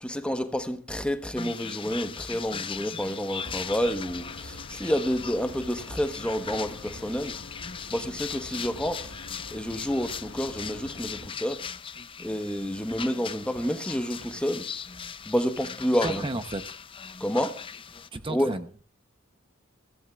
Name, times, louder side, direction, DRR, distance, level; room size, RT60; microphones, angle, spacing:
voice 1, 0.0-7.4 7.9-9.1 9.5-11.6 12.2-14.7 15.3-16.3 17.2-17.6 18.3-18.5, equal, 5° left, 1.1 m, -29 dB
sound 1, 1.4-18.1, left 6 dB, 25° left, 0.6 m, -39 dB
sound 2, 3.5-11.3, left 2 dB, 85° left, 1.0 m, -45 dB
voice 2, 16.0-16.6 18.1-18.8, right 2 dB, 25° right, 0.8 m, -33 dB
23.0 x 15.5 x 2.4 m
head